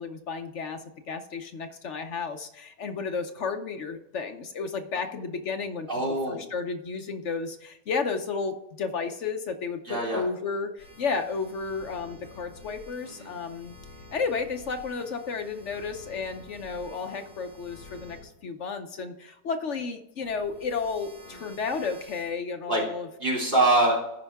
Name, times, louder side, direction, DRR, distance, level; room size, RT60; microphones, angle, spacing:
voice 1, 0.0-5.9 6.3-13.7 14.1-23.1, left 5 dB, 55° left, 6 dB, 0.9 m, -32 dB
voice 2, 5.9-6.4 9.8-10.2 13.2-13.3 21.3-21.4 22.7-22.8 23.2-24.0, right 2 dB, 30° right, -3 dB, 3.1 m, -24 dB
sound 1, 10.8-18.2 20.2-22.3, left 2 dB, 40° left, 4.5 m, -49 dB
14.0 x 5.6 x 3.5 m, 0.87 s
omnidirectional pair, 1.8 m